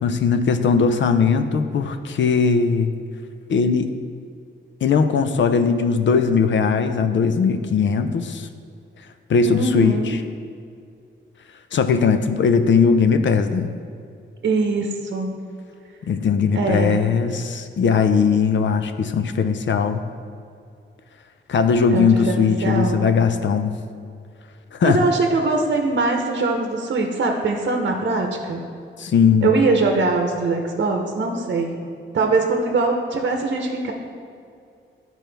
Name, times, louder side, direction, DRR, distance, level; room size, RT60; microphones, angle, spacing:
voice 1, 0.0-2.9 3.5-3.9 4.8-8.5 9.3-10.2 11.7-13.7 16.0-20.0 21.5-23.7 24.7-25.0 29.0-29.5, left 5 dB, 65° left, 8 dB, 0.5 m, -19 dB
voice 2, 9.4-10.1 14.4-15.3 16.5-17.0 21.9-23.0 24.8-28.6 29.4-31.7 32.1-33.9, right 3 dB, 60° right, 3 dB, 0.8 m, -22 dB
12.0 x 4.5 x 3.4 m, 2.4 s
wide cardioid pair, 105°, 21 cm